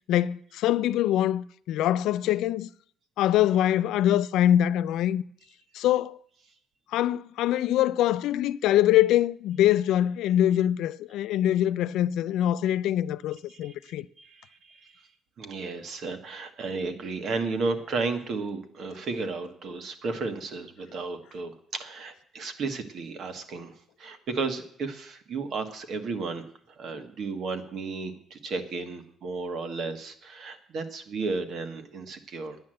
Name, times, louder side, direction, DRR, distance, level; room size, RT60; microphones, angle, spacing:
voice 1, 0.1-2.7 3.2-5.2 5.7-6.2 6.9-14.1, left 12 dB, 85° left, 0.5 m, -24 dB
voice 2, 13.5-15.1 15.4-32.6, right 4 dB, 45° right, 1.6 m, -34 dB
11.5 x 9.6 x 7.7 m
cardioid pair, 165°, 0 cm